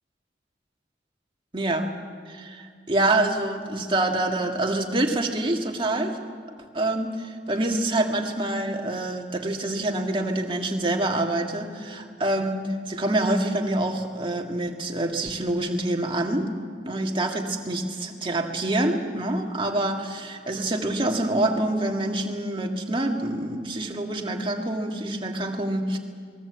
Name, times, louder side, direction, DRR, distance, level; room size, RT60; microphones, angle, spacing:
voice 1, 1.5-1.9 2.3-6.2 6.7-16.5 16.8-26.0, right 1 dB, 30° right, 2 dB, 2.0 m, -26 dB
24.0 x 20.5 x 8.0 m, 2.1 s
head